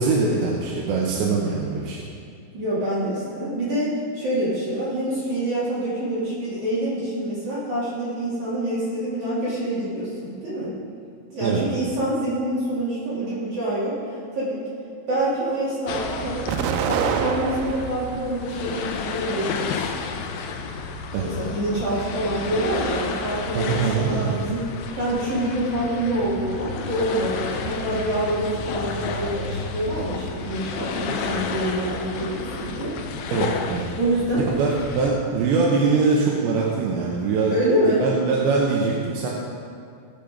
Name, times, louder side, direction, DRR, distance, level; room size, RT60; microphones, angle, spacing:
voice 1, 0.0-2.0 11.4-11.6 21.1-21.3 23.5-24.4 33.3-33.9 34.4-37.5 37.9-39.3, right 4 dB, 75° right, -3 dB, 2.9 m, -22 dB
voice 2, 2.5-10.7 11.3-14.0 14.3-14.6 15.1-16.5 16.8-19.8 21.2-24.6 24.9-32.9 33.9-34.4 37.5-38.0, right 1 dB, 45° right, -10 dB, 3.4 m, -26 dB
sound 1, 15.9-35.1, left 5 dB, 80° left, 2.6 m, -31 dB
Explosion, 16.5-18.1 18.7-19.6, right 8 dB, 90° right, 3.3 m, -27 dB
19.0 x 6.8 x 5.2 m, 2.4 s
omnidirectional pair, 5.9 m